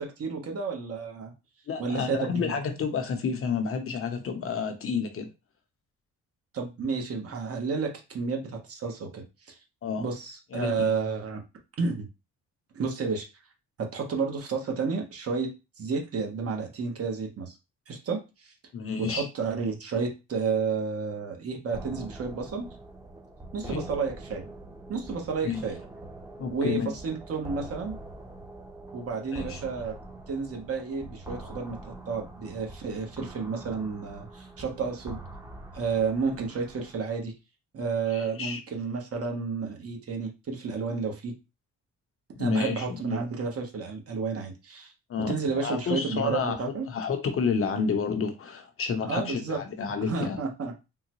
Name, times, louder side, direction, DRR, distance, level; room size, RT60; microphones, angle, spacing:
voice 1, 0.0-1.3 1.8-2.5 6.5-9.5 10.0-11.4 11.8-12.1 12.7-13.3 13.8-17.6 17.9-18.5 19.0-22.7 23.5-24.5 24.9-25.8 26.5-28.0 28.9-30.0 30.3-35.2 35.7-37.3 37.7-41.4 42.4-44.9 45.3-46.9 49.0-49.6 50.1-50.7, right 5 dB, 50° right, 2 dB, 1.1 m, -31 dB
voice 2, 1.7-5.3 9.8-10.1 10.5-10.9 18.7-19.3 23.6-23.8 25.4-25.6 26.4-26.9 29.3-29.6 38.1-38.6 42.3-43.2 45.1-46.6 46.9-50.4, left 5 dB, 45° left, 6 dB, 0.7 m, -30 dB
sound 1, 21.7-37.0, right 2 dB, 10° right, 0.8 m, -44 dB
3.7 x 2.2 x 3.0 m, 0.27 s
cardioid pair, 90°, 30 cm